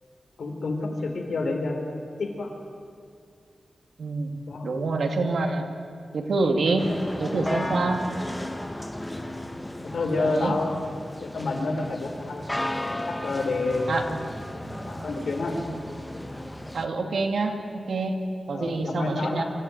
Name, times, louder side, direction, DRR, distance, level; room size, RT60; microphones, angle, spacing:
voice 1, 0.4-2.5 4.5-4.7 7.8-8.0 9.9-10.8 11.2-12.5 13.1-14.2 14.7-15.6 18.5-19.5, left 3 dB, 70° left, 2 dB, 3.9 m, -29 dB
voice 2, 4.0-4.3 4.6-5.7 6.1-6.9 7.2-8.1 10.2-10.6 13.9-14.2 16.7-19.4, right 3 dB, 75° right, 4 dB, 2.3 m, -26 dB
sound 1, 6.8-16.9, left 1 dB, 10° left, 1.1 m, -34 dB
25.5 x 14.5 x 9.1 m, 2.3 s
wide cardioid pair, 155°, 0 cm